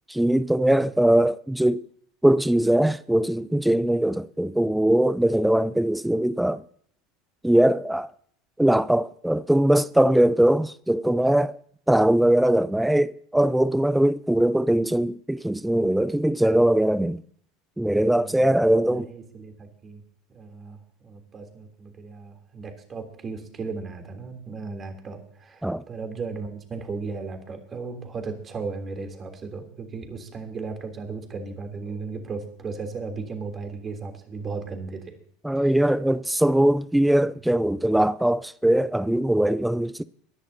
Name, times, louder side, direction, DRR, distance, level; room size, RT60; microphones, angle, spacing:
voice 1, 0.1-1.8 2.2-6.6 7.4-8.1 8.6-11.6 11.9-17.2 17.8-19.1 25.6-25.8 35.4-40.0, right 1 dB, 5° right, 0.5 m, -21 dB
voice 2, 18.1-20.0 20.3-35.1 35.5-35.7, right 4 dB, 30° right, 3.4 m, -36 dB
23.5 x 11.0 x 2.9 m
hypercardioid pair, 85°, 0 cm